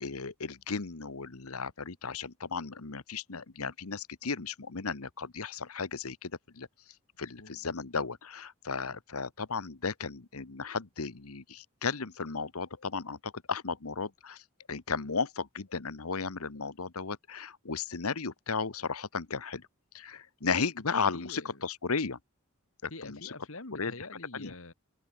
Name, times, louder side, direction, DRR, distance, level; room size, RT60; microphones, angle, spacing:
voice 1, 0.0-6.7 7.2-14.4 14.7-19.7 19.9-22.2 22.8-23.3 23.8-23.9 24.3-24.5, left 5 dB, 85° left, 1.3 m, -35 dB
voice 2, 21.1-21.6 22.9-24.7, left 2 dB, 70° left, 2.6 m, -45 dB
open air
head